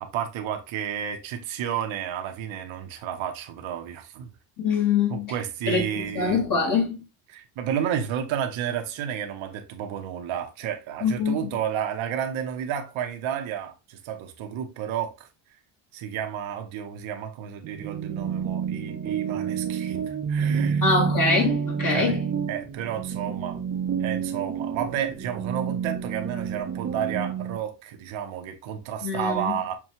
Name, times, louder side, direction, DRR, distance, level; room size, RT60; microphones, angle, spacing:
voice 1, 0.0-4.3 5.1-6.5 7.3-15.3 15.9-20.9 21.9-22.2 22.5-23.6 24.0-29.8, right 9 dB, 70° right, 0.9 m, -31 dB
voice 2, 4.6-5.3 5.7-5.8 6.1-6.9 11.0-11.6 20.8-22.2 29.0-29.6, left 4 dB, 40° left, 1.3 m, -24 dB
sound 1, 17.6-27.6, right 7 dB, 25° right, 0.5 m, -29 dB
6.0 x 2.3 x 2.8 m
cardioid pair, 105°, 48 cm